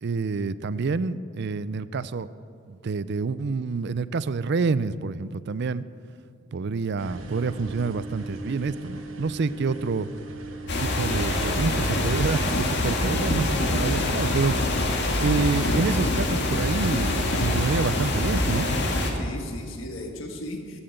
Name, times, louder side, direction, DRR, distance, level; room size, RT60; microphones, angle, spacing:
voice 1, 0.0-2.3 2.7-5.8 6.5-10.1 10.8-13.5 13.7-14.6 15.2-18.7, right 4 dB, 60° right, 16 dB, 0.4 m, -27 dB
sound 1, 7.0-12.1, right 2 dB, 85° right, 1.1 m, -39 dB
sound 2, 10.7-19.1, left 1 dB, 60° left, 1.8 m, -25 dB
voice 2, 13.0-13.5 19.2-20.8, left 1 dB, 75° left, 3 dB, 1.5 m, -35 dB
14.0 x 8.8 x 7.7 m, 2.4 s
head